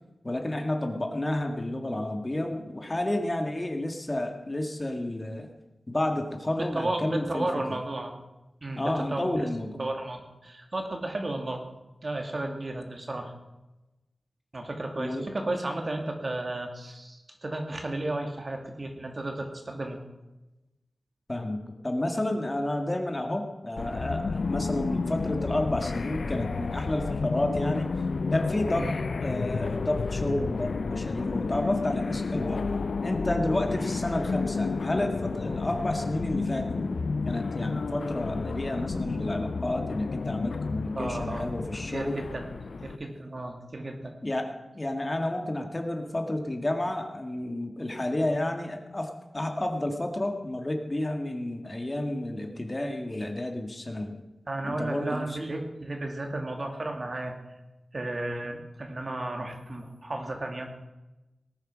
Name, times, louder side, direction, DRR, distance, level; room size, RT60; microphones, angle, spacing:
voice 1, 0.2-5.5 5.9-7.5 8.8-9.8 15.0-15.2 21.3-27.9 28.3-28.9 29.2-32.6 33.0-37.0 37.2-42.2 44.2-44.5 44.7-54.2 54.6-55.4, left 1 dB, 25° left, 4 dB, 1.9 m, -30 dB
voice 2, 6.5-8.2 8.6-9.5 9.8-11.6 12.0-13.3 14.5-20.0 28.7-29.0 33.7-34.0 40.9-41.5 41.9-42.5 42.8-44.1 54.5-57.4 57.9-60.7, right 2 dB, 45° right, 3 dB, 2.5 m, -33 dB
sound 1, 23.8-43.0, left 4 dB, 80° left, 0.5 m, -31 dB
19.0 x 9.4 x 6.2 m, 1.0 s
wide cardioid pair, 85°, 0 cm